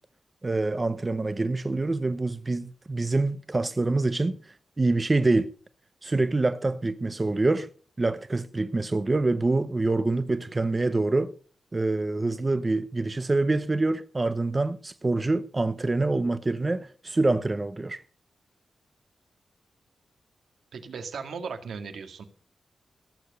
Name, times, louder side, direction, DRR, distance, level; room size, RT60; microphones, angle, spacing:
voice 1, 0.4-4.4 4.8-5.5 6.0-7.7 8.0-11.3 11.7-18.0, right 2 dB, 20° right, 0.7 m, -26 dB
voice 2, 20.7-22.2, right 5 dB, 90° right, 1.9 m, -37 dB
18.0 x 7.2 x 6.6 m
wide cardioid pair, 170°, 0 cm